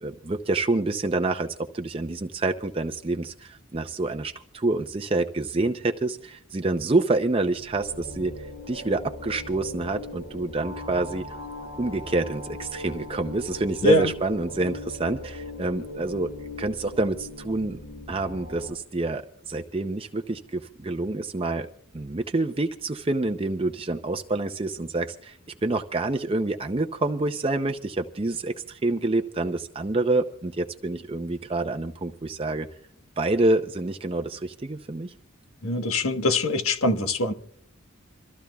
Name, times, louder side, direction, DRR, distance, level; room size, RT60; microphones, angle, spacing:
voice 1, 0.0-8.3 8.7-11.4 11.8-16.3 16.6-17.8 18.1-21.7 21.9-32.7 33.2-35.1, right 2 dB, 25° right, 0.6 m, -27 dB
sound 1, 7.3-18.7, left 2 dB, 65° left, 6.9 m, -39 dB
voice 2, 35.6-37.3, left 2 dB, 90° left, 1.3 m, -22 dB
27.0 x 14.5 x 2.3 m
head